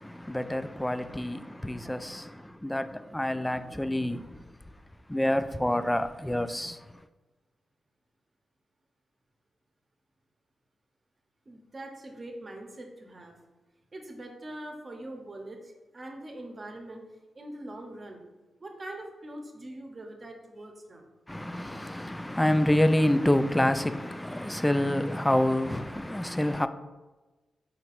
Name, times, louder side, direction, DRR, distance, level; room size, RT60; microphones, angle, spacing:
voice 1, 0.0-4.5 5.1-6.8 21.3-26.7, left 1 dB, 10° left, 0.3 m, -27 dB
voice 2, 11.5-13.4 13.9-17.1 17.3-18.2 18.6-21.1, right 1 dB, 40° right, 0.8 m, -43 dB
4.4 x 3.9 x 2.5 m
supercardioid pair, 45°, 0 cm